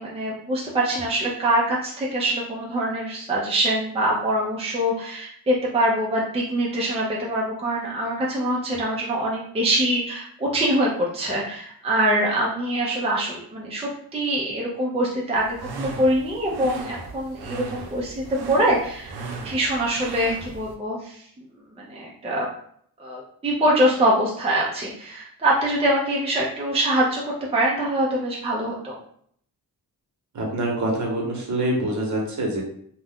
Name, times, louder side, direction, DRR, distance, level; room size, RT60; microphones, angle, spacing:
voice 1, 0.0-21.3 21.8-22.5 23.0-29.0, right 1 dB, 15° right, -4 dB, 0.6 m, -24 dB
sound 1, 15.4-20.7, right 4 dB, 90° right, 0.6 m, -36 dB
voice 2, 30.3-32.6, right 1 dB, 50° right, -1 dB, 1.1 m, -25 dB
2.4 x 2.2 x 3.5 m, 0.64 s
cardioid pair, 105°, 37 cm